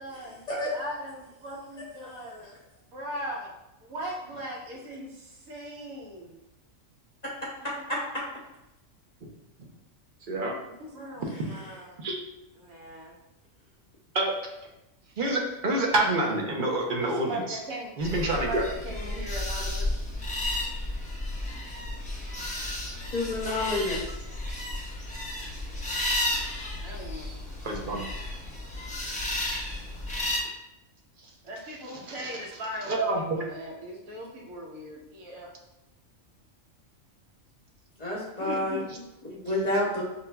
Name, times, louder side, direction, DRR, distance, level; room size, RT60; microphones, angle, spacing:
voice 1, 0.0-0.4 0.7-2.6 2.9-3.5 3.8-6.4 7.6-7.7 10.8-12.1 12.6-13.2 17.0-17.9 18.3-20.0 26.3-26.4 26.8-27.3 31.4-35.5 38.4-39.4, right 1 dB, 85° right, -2 dB, 1.4 m, -39 dB
voice 2, 15.2-17.6 18.0-18.6 24.4-24.5 27.6-28.0 32.1-32.3 32.9-33.2, right 2 dB, 50° right, 0 dB, 0.7 m, -27 dB
sound 1, 18.0-30.4, left 1 dB, 10° left, 0.5 m, -33 dB
voice 3, 23.1-24.0 38.0-38.8 39.2-40.0, left 1 dB, 40° left, -5 dB, 0.7 m, -29 dB
5.5 x 2.6 x 2.2 m, 0.90 s
omnidirectional pair, 1.4 m